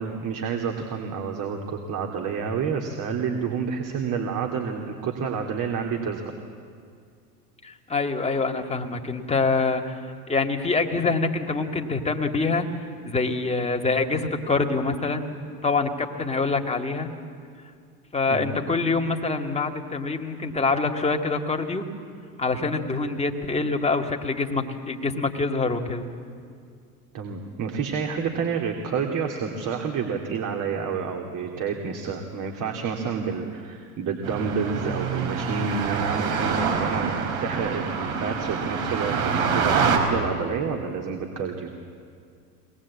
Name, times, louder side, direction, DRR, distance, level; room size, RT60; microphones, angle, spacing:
voice 1, 0.0-6.3 18.3-18.5 27.1-41.7, right 6 dB, 40° right, 2 dB, 2.7 m, -29 dB
voice 2, 7.6-9.9 10.3-12.7 13.0-17.1 18.1-21.8 22.4-26.1, left 3 dB, 15° left, 3 dB, 2.2 m, -25 dB
sound 1, 34.2-40.0, right 6 dB, 65° right, 4.9 m, -26 dB
23.5 x 20.0 x 8.6 m, 2.2 s
hypercardioid pair, 90°, 48 cm